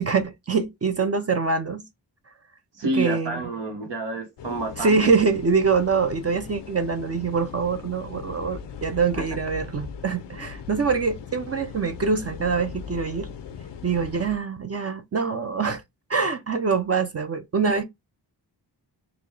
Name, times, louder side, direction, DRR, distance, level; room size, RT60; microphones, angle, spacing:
voice 1, 0.0-1.8 2.9-3.4 4.8-13.3 13.8-15.8 16.1-17.8, right 5 dB, 35° right, 0.5 m, -24 dB
voice 2, 2.7-5.1 9.1-9.2, right 2 dB, 80° right, 1.4 m, -29 dB
sound 1, 4.4-14.4, left 7 dB, 80° left, 0.6 m, -39 dB
4.1 x 2.2 x 3.2 m
wide cardioid pair, 95°, 42 cm